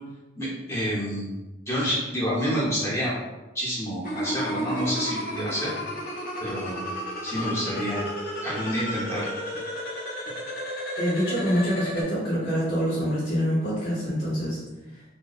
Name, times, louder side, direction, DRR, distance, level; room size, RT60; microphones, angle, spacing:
voice 1, 0.4-1.3 1.7-3.2 3.5-5.7 6.4-6.8 7.2-8.0 8.4-9.3, equal, 15° left, -8 dB, 0.8 m, -28 dB
sound 1, 4.0-12.0, equal, 50° left, 0.5 m, -33 dB
voice 2, 11.0-14.6, equal, 65° left, -7 dB, 0.9 m, -25 dB
2.7 x 2.2 x 2.4 m, 1.1 s
head